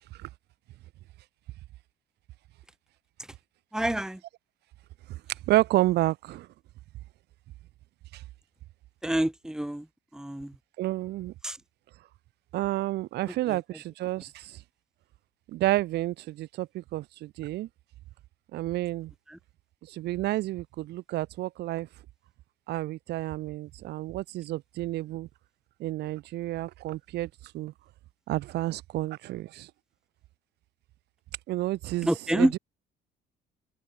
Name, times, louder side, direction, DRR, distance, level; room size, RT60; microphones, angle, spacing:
voice 1, 3.7-4.2 9.0-9.8 10.1-10.5 11.4-11.6 32.0-32.5, right 1 dB, 5° right, 1.6 m, -27 dB
voice 2, 5.5-6.5 8.1-8.2 10.8-11.3 12.5-14.6 15.5-17.7 18.5-19.1 19.9-21.9 22.7-25.3 25.8-27.3 27.5-27.7 28.3-29.7 31.5-32.6, right 16 dB, 80° right, 3.7 m, -30 dB
cardioid pair, 110°, 17 cm